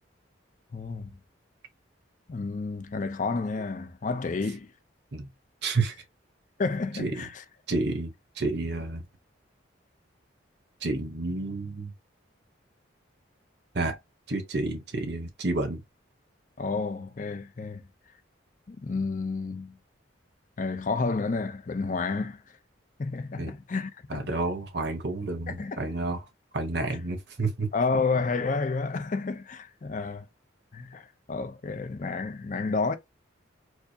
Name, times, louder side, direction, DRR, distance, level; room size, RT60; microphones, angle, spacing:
voice 1, 0.7-1.2 2.3-4.7 6.6-7.3 16.6-17.9 18.7-19.8 20.6-22.4 23.0-24.3 25.5-25.9 27.7-30.3 30.7-33.0, left 4 dB, 40° left, 0.5 m, -30 dB
voice 2, 5.6-5.9 7.0-7.3 7.7-9.0 10.8-11.9 13.7-14.0 14.3-15.8 23.4-23.5 24.1-26.3 26.5-27.7, right 3 dB, 60° right, 1.0 m, -30 dB
4.6 x 2.0 x 2.6 m
head